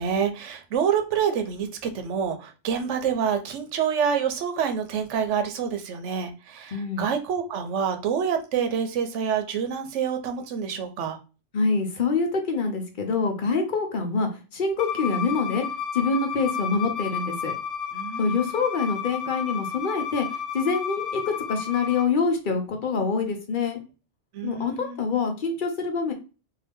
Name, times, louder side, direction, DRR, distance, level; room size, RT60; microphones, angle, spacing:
voice 1, 0.0-11.2 17.9-18.5 24.3-25.0, right 7 dB, 80° right, 7 dB, 0.9 m, -27 dB
voice 2, 6.7-7.0 11.5-15.6 15.9-17.5 18.2-20.3 20.5-21.2 21.5-23.8 24.4-26.1, left 4 dB, 50° left, 4 dB, 0.8 m, -25 dB
Bowed string instrument, 14.8-22.1, left 7 dB, 80° left, 1.0 m, -32 dB
2.7 x 2.3 x 3.5 m, 0.32 s
omnidirectional pair, 1.2 m